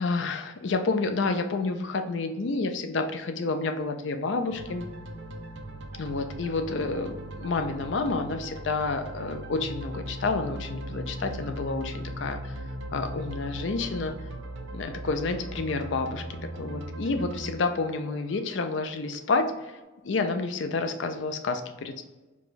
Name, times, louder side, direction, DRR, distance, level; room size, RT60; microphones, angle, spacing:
voice 1, 0.0-4.9 6.0-12.6 12.9-14.1 14.7-19.8 20.0-22.0, left 3 dB, 70° left, 7 dB, 0.5 m, -29 dB
sound 1, 4.5-19.2, right 1 dB, 70° right, 0.6 m, -39 dB
4.8 x 2.3 x 4.0 m, 1.1 s
head